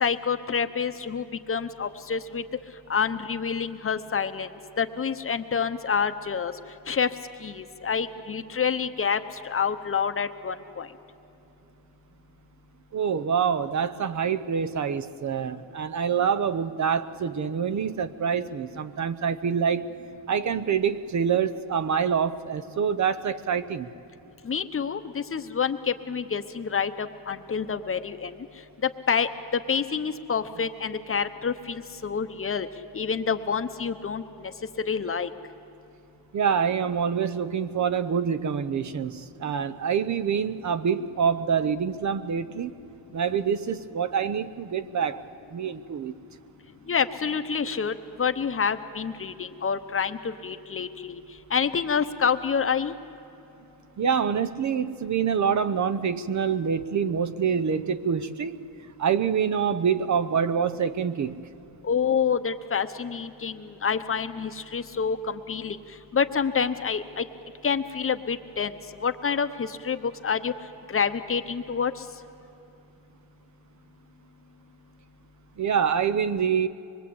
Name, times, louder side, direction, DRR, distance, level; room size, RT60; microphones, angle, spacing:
voice 1, 0.0-2.4 2.9-4.5 4.8-6.5 6.9-7.1 7.4-9.2 9.4-10.9 24.4-28.3 28.8-29.3 29.7-32.7 32.9-34.5 34.9-35.3 46.9-51.2 51.5-52.9 61.8-65.8 66.1-67.2 67.6-68.7 69.0-70.5 70.9-71.9, left 6 dB, 30° left, 9 dB, 0.9 m, -27 dB
voice 2, 12.9-19.9 20.3-23.9 36.3-42.7 43.1-45.2 45.5-46.1 54.0-58.6 59.0-61.4 75.6-76.7, right 7 dB, 40° right, 12 dB, 0.7 m, -26 dB
25.0 x 22.0 x 8.6 m, 2.9 s
cardioid pair, 145°, 43 cm